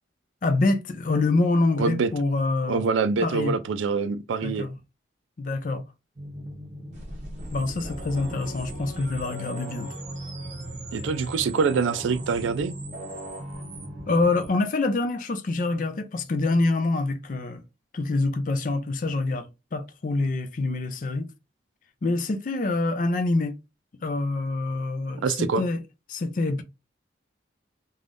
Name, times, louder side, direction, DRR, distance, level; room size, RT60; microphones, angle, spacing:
voice 1, 0.4-2.8 3.2-3.6 4.4-4.8 5.4-5.8 7.5-10.0 14.1-17.6 17.9-21.3 22.0-23.6 24.0-25.8 26.1-26.6, left 2 dB, 45° left, 0.4 m, -26 dB
voice 2, 1.8-2.1 2.7-4.7 10.9-12.7 25.2-25.6, right 5 dB, 85° right, 0.4 m, -25 dB
sound 1, 6.2-14.5, right 1 dB, 35° right, 0.7 m, -37 dB
3.3 x 2.2 x 2.5 m
head